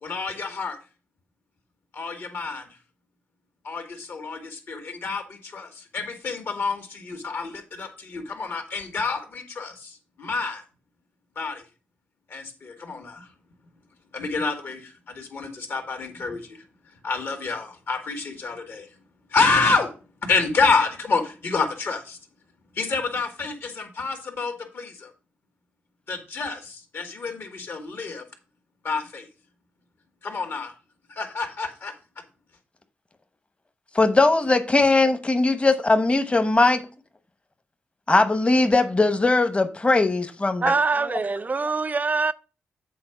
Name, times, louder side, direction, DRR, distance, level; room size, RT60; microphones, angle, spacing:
voice 1, 0.0-0.8 1.9-2.6 3.6-10.6 11.4-11.6 12.3-13.3 14.1-16.6 17.0-18.9 19.3-19.9 20.2-22.2 22.8-25.1 26.1-28.2 28.8-29.3 30.2-30.7 31.1-31.9, left 4 dB, 65° left, 2.1 m, -28 dB
voice 2, 33.9-36.8 38.1-40.7, left 2 dB, 25° left, 1.0 m, -20 dB
voice 3, 40.6-42.3, right 4 dB, 40° right, 0.4 m, -24 dB
7.7 x 3.9 x 5.8 m
supercardioid pair, 50°, 4 cm